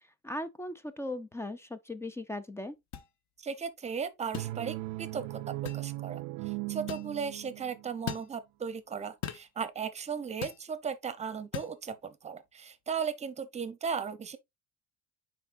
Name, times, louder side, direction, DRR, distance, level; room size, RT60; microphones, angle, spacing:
voice 1, 0.0-2.7, left 1 dB, 10° left, 0.3 m, -38 dB
sound 1, 2.9-3.1 4.3-4.5 5.7-5.9 6.9-7.1 8.1-8.3 9.2-9.5 10.4-10.6 11.5-11.7, left 10 dB, 55° left, 1.1 m, -38 dB
voice 2, 3.4-5.4 5.7-14.4, right 6 dB, 20° right, 0.7 m, -36 dB
sound 2, 4.3-8.0, right 19 dB, 85° right, 0.5 m, -38 dB
9.4 x 4.4 x 2.5 m
cardioid pair, 160°, 34 cm